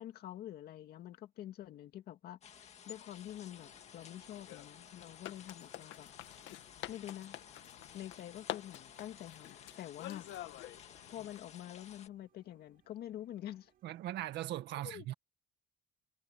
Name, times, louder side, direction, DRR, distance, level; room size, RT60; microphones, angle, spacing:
voice 1, 0.0-6.1 6.9-7.4 7.9-10.5 11.1-13.7 14.8-15.1, left 12 dB, 60° left, 2.2 m, -47 dB
sound 1, 2.4-12.1, left 8 dB, 35° left, 2.0 m, -56 dB
sound 2, 3.2-14.6, right 11 dB, 50° right, 7.6 m, -73 dB
sound 3, 3.6-11.4, left 15 dB, 80° left, 1.7 m, -49 dB
voice 2, 13.8-15.1, right 14 dB, 65° right, 1.8 m, -39 dB
cardioid pair, 160°, 19 cm